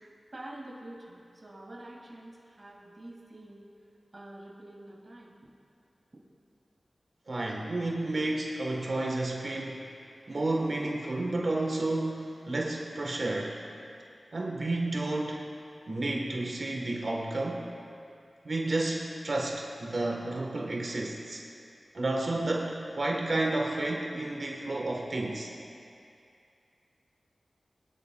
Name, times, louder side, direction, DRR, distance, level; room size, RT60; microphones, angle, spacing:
voice 1, 0.0-3.6 4.1-5.5, right 1 dB, 35° right, -4 dB, 2.2 m, -47 dB
voice 2, 7.3-9.9 10.3-13.6 14.3-15.5 15.9-17.6 18.4-21.4 21.9-25.5, right 2 dB, 55° right, -1 dB, 1.3 m, -31 dB
22.0 x 11.0 x 2.3 m, 2.5 s
wide cardioid pair, 70°, 0 cm